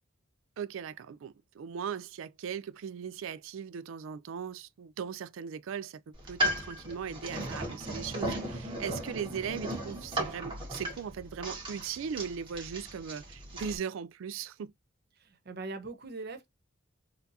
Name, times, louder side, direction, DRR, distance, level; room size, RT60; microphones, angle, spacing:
voice 1, 0.6-6.0 6.3-14.7, right 7 dB, 70° right, 0.3 m, -38 dB
sound 1, 6.1-13.8, equal, 25° right, 1.4 m, -36 dB
voice 2, 15.2-16.5, right 3 dB, 50° right, 0.7 m, -41 dB
4.2 x 2.6 x 2.6 m
head